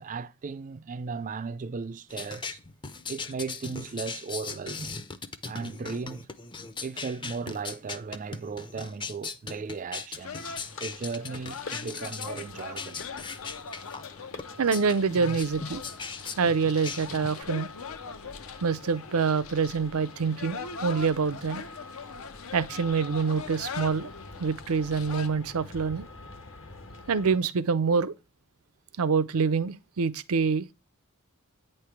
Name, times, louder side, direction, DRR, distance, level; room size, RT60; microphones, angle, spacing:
voice 1, 0.0-2.6 3.1-5.0 5.4-6.3 6.8-13.0, right 4 dB, 35° right, 0.3 m, -36 dB
sound 1, 2.1-17.4, left 4 dB, 20° left, 0.5 m, -39 dB
sound 2, 10.2-25.3, left 5 dB, 80° left, 0.7 m, -41 dB
sound 3, 10.3-27.4, left 3 dB, 60° left, 1.3 m, -47 dB
voice 2, 14.6-15.8 16.4-17.7 18.6-21.6 22.5-24.1 24.4-26.1 27.1-28.1 29.0-30.7, right 5 dB, 85° right, 0.6 m, -26 dB
9.0 x 3.3 x 5.8 m
head